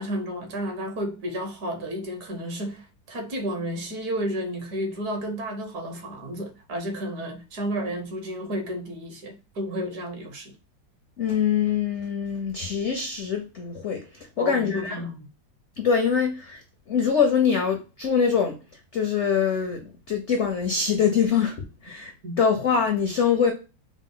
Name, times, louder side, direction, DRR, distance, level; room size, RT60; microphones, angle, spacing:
voice 1, 0.0-10.6 14.4-15.3 22.2-22.4, equal, 60° right, 1.3 m, -32 dB
voice 2, 11.2-15.0 15.8-18.6 18.9-23.5, left 7 dB, 65° left, 0.7 m, -24 dB
4.9 x 2.0 x 3.7 m
omnidirectional pair, 2.0 m